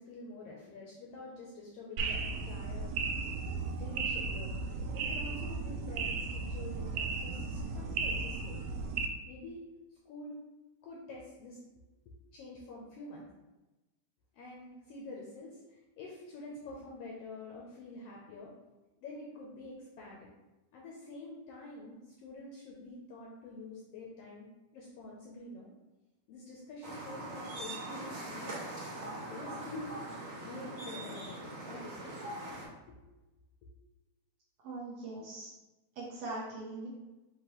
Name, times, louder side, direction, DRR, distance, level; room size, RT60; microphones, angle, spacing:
voice 1, 0.0-3.0 3.7-4.5 4.9-8.7 9.3-9.6 10.1-10.3 10.8-11.6 12.1-13.3 14.3-18.5 19.0-20.3 20.7-24.5 24.7-25.7 26.3-29.9 30.4-32.5 32.9-33.0, left 2 dB, 75° left, -3 dB, 1.4 m, -47 dB
sound 1, 2.0-9.1, right 4 dB, 85° right, 2.0 m, -35 dB
sound 2, 26.8-32.6, right 2 dB, 45° right, 1.7 m, -42 dB
voice 2, 34.6-35.5 36.0-36.9, right 2 dB, 70° right, -6 dB, 1.6 m, -41 dB
5.6 x 2.9 x 3.0 m, 1.1 s
omnidirectional pair, 3.3 m